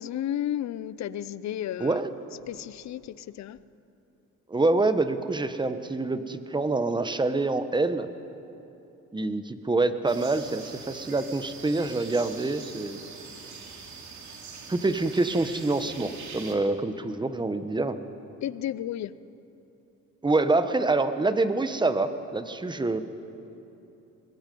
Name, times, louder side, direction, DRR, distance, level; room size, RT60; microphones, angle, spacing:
voice 1, 0.0-2.0 2.5-3.6 18.4-19.1, left 11 dB, 65° left, 17 dB, 0.7 m, -32 dB
voice 2, 4.5-8.1 9.1-13.0 14.7-18.0 20.2-23.0, right 3 dB, 15° right, 10 dB, 1.1 m, -26 dB
sound 1, 10.1-16.5, right 5 dB, 70° right, 2.7 m, -43 dB
23.5 x 20.5 x 5.4 m, 2.9 s
cardioid pair, 90°, 30 cm